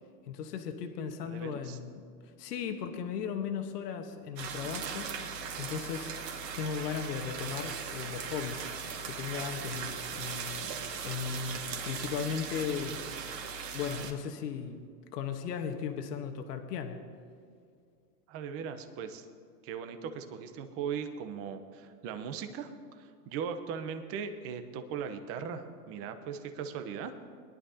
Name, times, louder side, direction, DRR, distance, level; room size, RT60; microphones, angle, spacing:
voice 1, 0.3-2.0 2.4-5.1 5.6-6.1 6.5-8.7 9.0-10.7 11.0-13.0 13.7-14.8 15.1-17.0, left 7 dB, 70° left, 5 dB, 1.4 m, -36 dB
voice 2, 1.3-1.8 18.3-19.3 19.6-27.2, right 7 dB, 30° right, 8 dB, 0.9 m, -39 dB
sound 1, 4.4-14.1, right 6 dB, 75° right, 2.1 m, -39 dB
21.5 x 11.5 x 2.8 m, 2.3 s
supercardioid pair, 145°, 49 cm